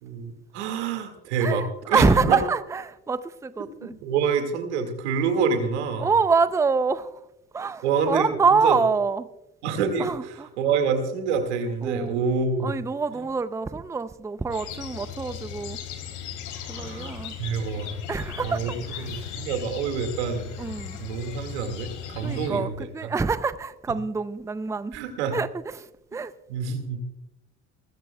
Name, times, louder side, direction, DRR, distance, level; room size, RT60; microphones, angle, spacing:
voice 1, 0.0-2.4 3.6-6.1 7.8-8.8 9.6-12.8 13.1-13.2 16.7-20.5 21.0-23.1 24.9-25.4 26.5-27.0, right 5 dB, 85° right, 2.1 m, -27 dB
voice 2, 1.4-4.0 6.0-7.1 7.5-9.3 10.0-10.5 11.8-12.2 12.6-15.8 16.7-17.4 18.1-19.3 20.6-21.0 22.2-25.0 25.3-25.5 25.8-26.3, right 4 dB, 10° right, 0.6 m, -26 dB
sound 1, 14.5-22.5, left 8 dB, 60° left, 2.7 m, -37 dB
22.5 x 13.5 x 2.3 m
hypercardioid pair, 80°, 33 cm